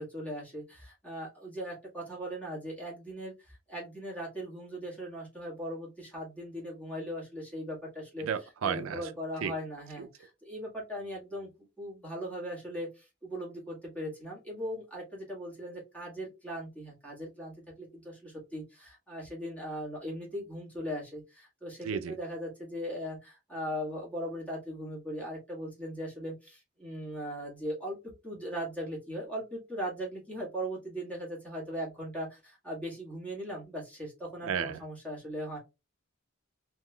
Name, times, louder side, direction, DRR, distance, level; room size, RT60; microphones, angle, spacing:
voice 1, 0.0-8.3 8.6-11.5 11.8-28.0 28.2-35.6, equal, 5° left, 1.5 m, -39 dB
voice 2, 8.2-9.1 9.4-9.5 10.0-10.1 21.8-22.2 34.4-34.8, right 7 dB, 80° right, 0.4 m, -33 dB
3.5 x 3.0 x 2.2 m
head